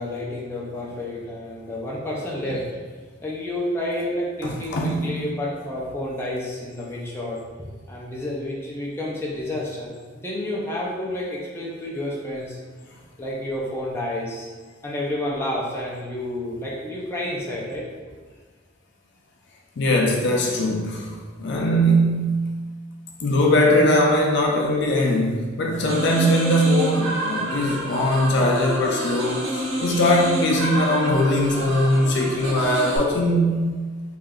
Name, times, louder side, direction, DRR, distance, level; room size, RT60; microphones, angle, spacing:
voice 1, 0.0-2.7 3.2-12.6 13.2-14.5 14.8-17.9, left 1 dB, 10° left, -5 dB, 0.6 m, -30 dB
voice 2, 4.4-5.3 19.8-21.1 21.4-22.5 23.2-33.7, equal, 60° left, 0 dB, 0.5 m, -20 dB
sound 1, 25.9-33.0, right 1 dB, 85° right, 0.9 m, -29 dB
3.2 x 2.6 x 3.7 m, 1.5 s
head